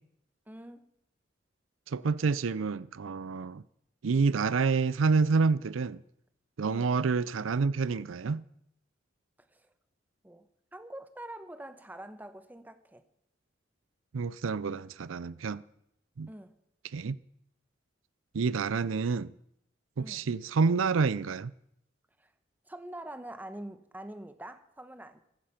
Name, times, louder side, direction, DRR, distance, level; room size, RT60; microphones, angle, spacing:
voice 1, 0.5-0.9 6.7-7.0 9.5-9.7 10.2-13.0 16.3-16.6 20.0-20.3 22.2-22.3 22.7-25.2, right 1 dB, 10° right, 1.0 m, -45 dB
voice 2, 1.9-3.6 4.0-6.0 6.6-8.4 14.1-15.6 16.2-16.3 16.9-17.2 18.3-19.3 20.0-21.5, right 4 dB, 90° right, 0.5 m, -28 dB
15.5 x 14.5 x 5.8 m
head